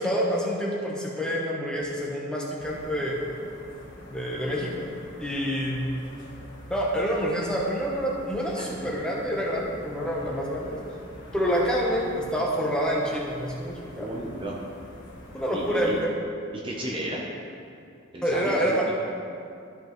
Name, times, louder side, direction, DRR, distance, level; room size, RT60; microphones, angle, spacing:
voice 1, 0.0-3.2 4.1-4.8 5.2-5.9 6.7-10.8 11.3-14.2 15.3-16.1 18.2-18.9, equal, 5° left, -4 dB, 0.9 m, -27 dB
sound 1, 2.6-16.0, equal, 60° left, 1.5 m, -45 dB
voice 2, 14.0-14.6 15.5-16.0 16.5-17.2 18.1-18.9, right 1 dB, 25° right, -3 dB, 0.7 m, -34 dB
13.0 x 5.2 x 3.1 m, 2.5 s
head